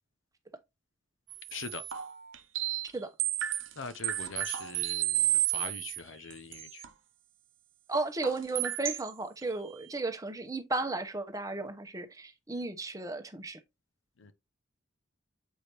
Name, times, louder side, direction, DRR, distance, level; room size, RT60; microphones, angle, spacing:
sound 1, 1.3-2.9 3.2-6.0 6.3-6.9 8.2-9.1 9.4-9.5, right 14 dB, 70° right, 0.7 m, -32 dB
voice 1, 1.5-1.8 3.8-6.8 14.2-14.3, left 5 dB, 70° left, 0.7 m, -42 dB
voice 2, 7.9-13.6, right 3 dB, 15° right, 0.8 m, -34 dB
8.0 x 5.0 x 3.0 m
head